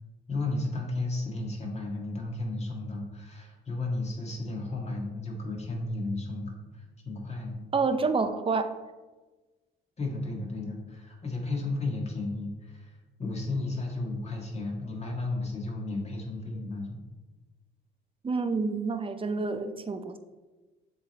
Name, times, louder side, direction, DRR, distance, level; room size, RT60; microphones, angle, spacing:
voice 1, 0.3-7.6 10.0-17.0, left 2 dB, 35° left, 0 dB, 1.8 m, -33 dB
voice 2, 7.7-8.7 18.2-20.2, right 4 dB, 25° right, 9 dB, 0.6 m, -28 dB
7.2 x 3.6 x 4.2 m, 1.2 s
cardioid pair, 90°, 20 cm